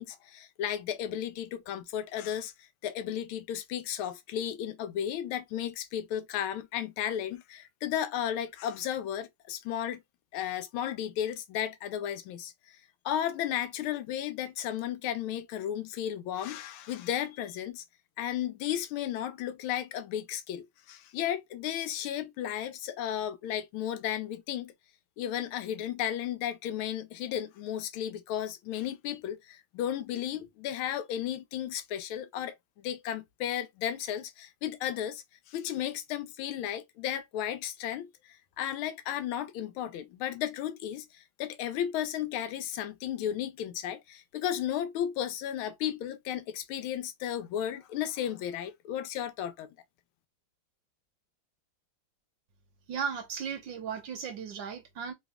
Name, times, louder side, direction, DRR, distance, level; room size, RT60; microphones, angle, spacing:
voice 1, 0.0-2.5 2.8-10.0 10.3-12.5 13.0-17.8 18.2-24.7 25.2-49.7, left 10 dB, 85° left, 1.4 m, -34 dB
voice 2, 52.9-55.1, right 6 dB, 70° right, 1.4 m, -36 dB
3.4 x 3.0 x 2.3 m
omnidirectional pair, 2.3 m